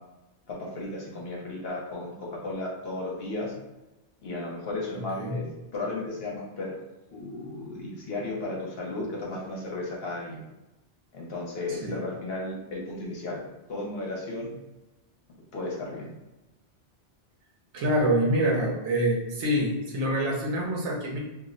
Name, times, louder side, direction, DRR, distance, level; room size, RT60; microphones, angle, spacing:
voice 1, 0.5-3.5 4.2-5.4 5.7-6.7 7.1-10.4 11.1-13.4 13.7-14.5 15.5-16.1, left 2 dB, 60° left, -3 dB, 1.0 m, -34 dB
voice 2, 17.7-21.2, right 1 dB, 80° right, -2 dB, 1.1 m, -26 dB
2.7 x 2.0 x 3.7 m, 1.0 s
omnidirectional pair, 1.2 m